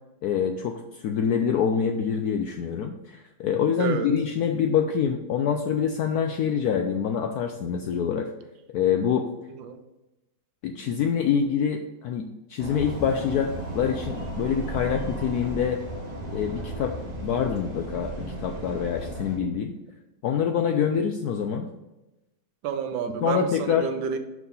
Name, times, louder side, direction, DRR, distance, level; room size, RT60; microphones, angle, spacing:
voice 1, 0.2-8.3 8.7-9.3 10.6-12.2 12.5-15.8 16.3-17.0 17.2-19.7 20.2-21.7 23.2-23.9, left 7 dB, 75° left, 5 dB, 0.8 m, -25 dB
voice 2, 3.8-4.1 9.5-9.8 20.9-21.0 22.6-24.2, right 7 dB, 80° right, 8 dB, 1.4 m, -30 dB
sound 1, 12.6-19.4, right 1 dB, 30° right, 0.8 m, -35 dB
5.9 x 4.7 x 5.3 m, 1.0 s
omnidirectional pair, 2.1 m